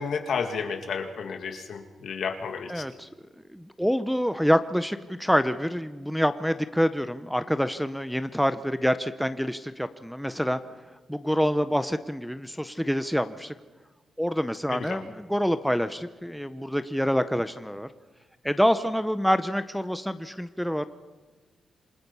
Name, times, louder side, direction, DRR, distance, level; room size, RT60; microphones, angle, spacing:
voice 1, 0.0-2.8 14.7-15.0, left 5 dB, 65° left, 5 dB, 2.3 m, -32 dB
voice 2, 2.7-3.1 3.5-10.6 11.1-13.5 14.2-17.9 18.4-20.9, equal, ahead, 10 dB, 0.6 m, -26 dB
27.5 x 22.0 x 5.5 m, 1.3 s
wide cardioid pair, 165°, 0 cm